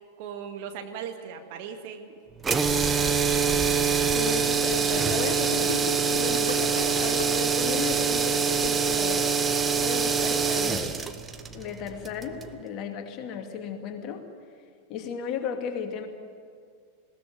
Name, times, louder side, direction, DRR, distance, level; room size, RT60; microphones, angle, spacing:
voice 1, 0.2-2.1 6.2-6.4, right 7 dB, 45° right, 5 dB, 2.0 m, -38 dB
sound 1, 2.4-12.5, right 6 dB, 15° right, 1.2 m, -25 dB
voice 2, 4.1-5.8 6.1-9.3 9.8-11.0 11.5-14.3 14.9-16.1, left 6 dB, 35° left, 4 dB, 2.5 m, -34 dB
Gurgling / Sink (filling or washing), 5.5-10.0, left 3 dB, 80° left, 1.2 m, -38 dB
20.5 x 18.0 x 9.4 m, 2.1 s
figure-of-eight pair, 90°, 0 cm